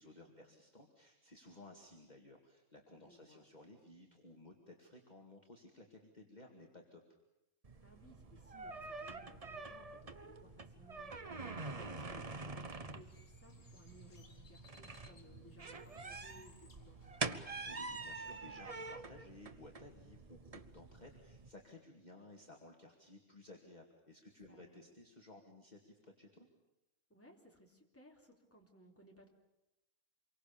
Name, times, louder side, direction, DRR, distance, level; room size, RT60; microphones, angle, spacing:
voice 1, 0.0-7.0 17.7-26.5, left 2 dB, 30° left, 0 dB, 2.4 m, -57 dB
voice 2, 3.0-3.5 7.8-17.3 24.5-24.8 27.1-29.3, equal, 10° left, 0 dB, 3.6 m, -62 dB
sound 1, 7.6-21.5, right 3 dB, 30° right, 0.9 m, -46 dB
Bird, 12.6-17.6, left 3 dB, 65° left, 3.0 m, -66 dB
27.0 x 23.5 x 7.0 m, 0.93 s
omnidirectional pair, 1.6 m